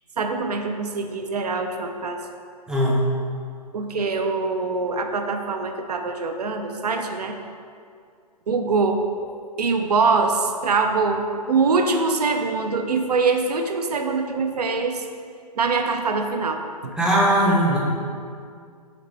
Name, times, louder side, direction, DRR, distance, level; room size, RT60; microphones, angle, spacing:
voice 1, 0.2-2.2 3.7-7.3 8.5-9.0 9.6-15.0 15.6-16.9, right 4 dB, 75° right, 5 dB, 0.5 m, -23 dB
voice 2, 2.7-3.0 17.0-17.8, equal, 5° right, -5 dB, 0.5 m, -19 dB
4.1 x 4.0 x 3.1 m, 2.3 s
figure-of-eight pair, 120°, 21 cm